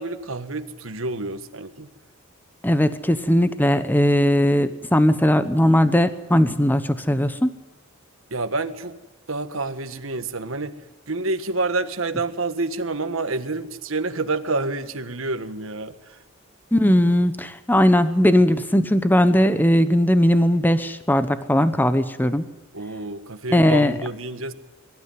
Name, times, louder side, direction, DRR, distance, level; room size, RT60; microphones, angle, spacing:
voice 1, 0.0-1.9 8.3-9.0 9.3-10.7 11.1-16.2 22.7-24.5, right 3 dB, 70° right, 9 dB, 1.6 m, -28 dB
voice 2, 2.6-7.5 16.7-22.4 23.5-23.9, equal, 10° left, 11 dB, 0.9 m, -18 dB
23.5 x 13.0 x 9.6 m, 1.2 s
head